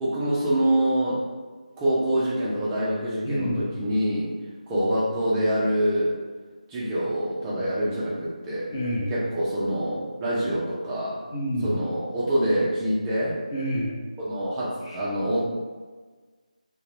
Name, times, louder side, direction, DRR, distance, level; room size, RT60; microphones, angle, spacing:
voice 1, 0.0-1.2 1.8-4.3 4.7-6.1 6.7-8.7 9.1-11.2 11.6-13.4 14.2-15.4, right 1 dB, 10° right, -8 dB, 0.3 m, -25 dB
voice 2, 3.2-3.7 8.7-9.1 11.3-11.8 13.5-14.0 14.8-15.0, equal, 30° left, -6 dB, 0.6 m, -28 dB
2.3 x 2.1 x 3.2 m, 1.4 s
figure-of-eight pair, 165°, 4 cm